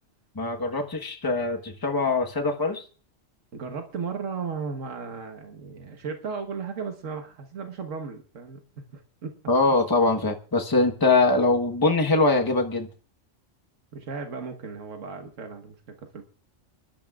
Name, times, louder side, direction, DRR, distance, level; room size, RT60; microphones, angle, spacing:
voice 1, 0.3-2.8 9.5-12.9, left 3 dB, 20° left, 3 dB, 1.1 m, -22 dB
voice 2, 3.5-9.4 13.9-16.2, right 5 dB, 90° right, 4 dB, 1.6 m, -35 dB
26.0 x 12.0 x 2.4 m, 0.39 s
omnidirectional pair, 1.3 m